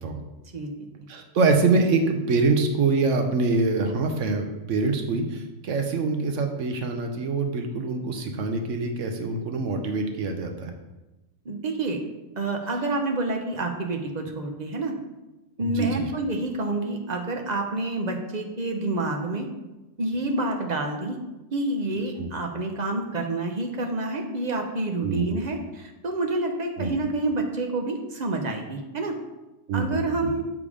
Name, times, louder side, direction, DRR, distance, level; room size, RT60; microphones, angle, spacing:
voice 1, 1.1-10.7 15.6-16.1 22.2-22.3 25.0-25.4 26.8-26.9 29.7-30.3, right 3 dB, 75° right, 4 dB, 1.0 m, -25 dB
voice 2, 11.4-12.0 12.4-14.9 15.6-19.5 20.0-21.2 21.5-29.2 29.7-30.4, right 2 dB, 40° right, 3 dB, 0.7 m, -28 dB
7.0 x 3.6 x 4.8 m, 1.0 s
omnidirectional pair, 1.3 m